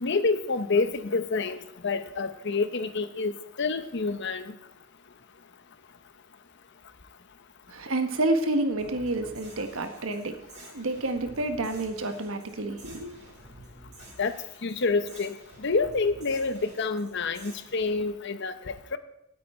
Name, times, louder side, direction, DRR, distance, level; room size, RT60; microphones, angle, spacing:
voice 1, 0.0-4.5 14.2-14.4 14.6-19.0, left 4 dB, 55° left, 11 dB, 0.9 m, -28 dB
voice 2, 7.7-10.4 10.7-13.1, right 2 dB, 75° right, 7 dB, 1.2 m, -29 dB
sound 1, 8.8-17.9, right 1 dB, 35° right, 4.7 m, -51 dB
18.0 x 8.4 x 4.3 m, 0.84 s
head